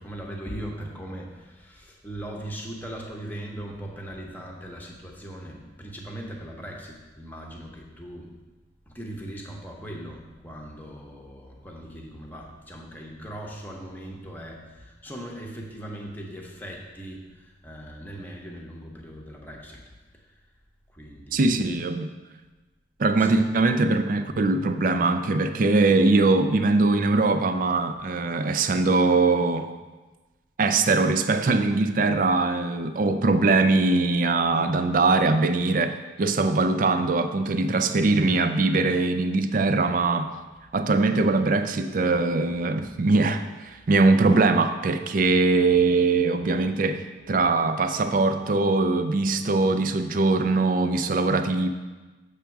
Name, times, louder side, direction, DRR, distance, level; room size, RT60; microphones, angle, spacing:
voice 1, 0.0-8.3 8.9-19.9 20.2-20.3 20.9-21.6 23.1-23.4, right 1 dB, 10° left, -1 dB, 0.8 m, -39 dB
voice 2, 21.3-22.1 23.0-29.7 30.6-35.9 36.2-40.3 40.7-51.7, right 3 dB, 45° right, 8 dB, 0.4 m, -22 dB
7.4 x 3.5 x 5.8 m, 1.2 s
head